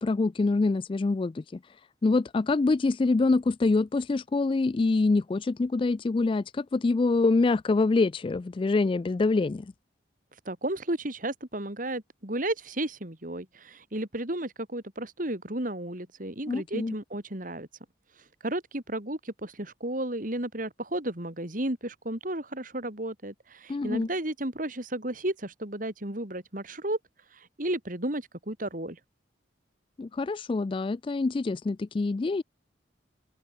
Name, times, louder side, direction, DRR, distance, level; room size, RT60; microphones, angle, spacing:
voice 1, 0.0-1.6 2.0-9.7 16.5-16.9 23.7-24.1 30.0-32.4, left 3 dB, 30° left, 0.3 m, -25 dB
voice 2, 10.5-17.7 18.4-27.0 27.3-29.0, right 1 dB, 50° right, 3.5 m, -33 dB
open air
head